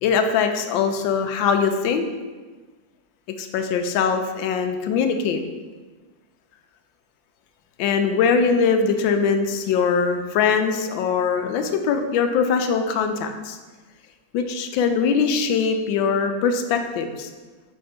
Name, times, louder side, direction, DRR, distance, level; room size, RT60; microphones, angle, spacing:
voice 1, 0.0-2.1 3.4-5.4 7.8-13.6 14.3-17.3, left 6 dB, 80° left, 7 dB, 1.4 m, -22 dB
6.1 x 4.4 x 5.1 m, 1.3 s
omnidirectional pair, 2.1 m